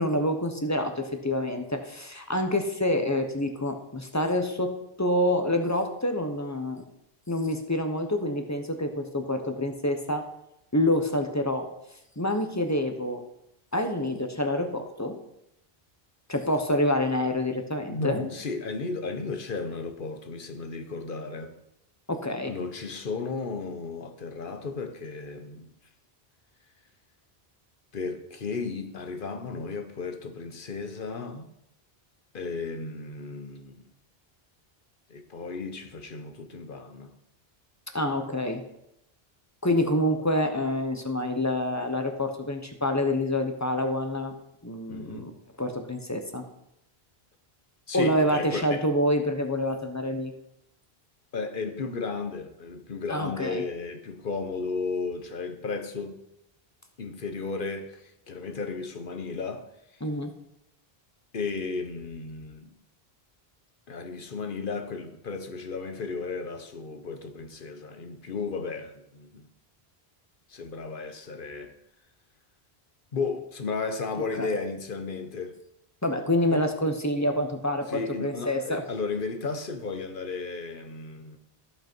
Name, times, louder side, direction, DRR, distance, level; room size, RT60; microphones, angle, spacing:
voice 1, 0.0-6.8 7.3-10.3 10.7-11.7 12.2-13.2 13.7-15.2 16.3-18.3 22.1-22.5 37.9-38.6 39.6-44.3 44.6-45.3 45.6-46.4 47.9-50.3 53.1-53.6 60.0-60.3 74.4-74.6 76.0-78.8, left 1 dB, 15° left, 1.0 m, -27 dB
voice 2, 17.9-21.5 22.5-25.7 27.9-31.5 32.3-33.8 35.1-37.1 44.9-45.3 47.9-48.9 51.3-56.2 57.0-59.7 59.9-60.0 61.3-62.7 63.9-69.5 70.5-71.7 73.1-75.5 76.5-76.7 77.9-81.4, left 4 dB, 55° left, 1.1 m, -34 dB
14.5 x 5.6 x 4.5 m
omnidirectional pair, 1.0 m